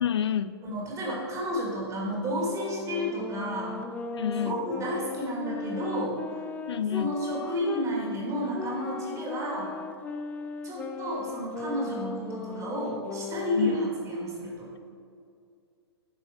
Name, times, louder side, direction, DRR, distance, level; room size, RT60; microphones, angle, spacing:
voice 1, 0.0-0.5 4.1-4.6 6.7-7.1 13.6-13.8, left 9 dB, 75° left, 14 dB, 0.5 m, -27 dB
voice 2, 0.6-3.8 4.4-6.2 6.9-9.7 10.6-14.7, equal, 20° right, -3 dB, 2.4 m, -31 dB
sound 1, 2.4-7.9 8.5-13.7, left 5 dB, 10° left, 0.4 m, -37 dB
10.0 x 4.8 x 6.0 m, 2.4 s
hypercardioid pair, 125°, 14 cm